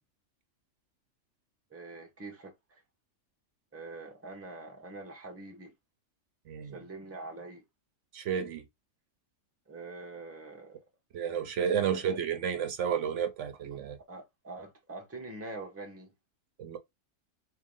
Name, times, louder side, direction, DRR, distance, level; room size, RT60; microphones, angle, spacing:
voice 1, 1.7-2.8 3.7-5.7 6.7-7.6 9.7-10.8 11.8-12.2 14.1-16.1, right 3 dB, 15° right, 0.8 m, -44 dB
voice 2, 8.1-8.6 11.1-14.0 16.6-16.8, right 8 dB, 70° right, 0.9 m, -31 dB
3.7 x 3.0 x 3.7 m
omnidirectional pair, 1.3 m